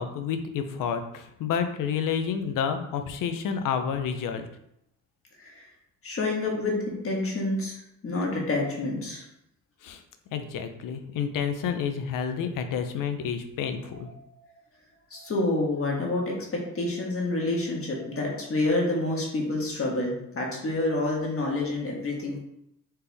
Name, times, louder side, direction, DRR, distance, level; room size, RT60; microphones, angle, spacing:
voice 1, 0.0-4.4 9.8-10.0 10.3-14.1, left 7 dB, 80° left, 8 dB, 0.7 m, -29 dB
voice 2, 6.0-6.8 7.0-7.8 8.0-9.2 15.1-16.2 16.5-22.4, left 2 dB, 45° left, -2 dB, 1.5 m, -28 dB
4.4 x 3.5 x 3.4 m, 0.78 s
cardioid pair, 95°, 32 cm